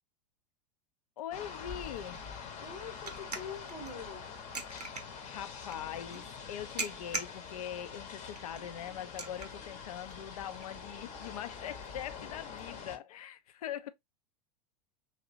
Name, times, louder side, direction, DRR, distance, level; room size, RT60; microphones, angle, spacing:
voice 1, 1.2-2.2 5.0-13.9, left 10 dB, 65° left, 0.5 m, -42 dB
sound 1, 1.3-13.0, left 6 dB, 35° left, 0.8 m, -45 dB
sound 2, 1.3-12.6, right 3 dB, 90° right, 0.6 m, -46 dB
voice 2, 2.6-4.3 12.2-12.3, left 5 dB, 90° left, 1.1 m, -44 dB
3.1 x 2.8 x 2.5 m
figure-of-eight pair, 90°, 20 cm